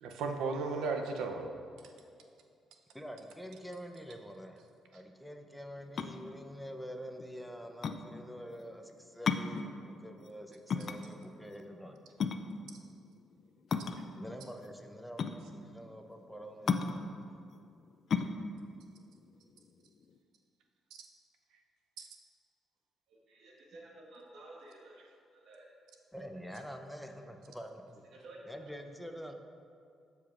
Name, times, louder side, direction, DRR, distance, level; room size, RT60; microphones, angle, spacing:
voice 1, 0.0-1.5 22.0-22.1, right 4 dB, 85° right, 4 dB, 0.6 m, -35 dB
voice 2, 2.9-4.6 4.9-12.0 14.1-17.1 26.1-28.0 28.5-29.3, equal, ahead, 4 dB, 0.7 m, -46 dB
sound 1, 5.9-20.2, left 5 dB, 55° left, 0.3 m, -36 dB
voice 3, 23.1-25.7 28.1-28.6, right 2 dB, 70° right, -3 dB, 1.3 m, -53 dB
12.5 x 4.7 x 2.5 m, 2.4 s
cardioid pair, 90°, 0 cm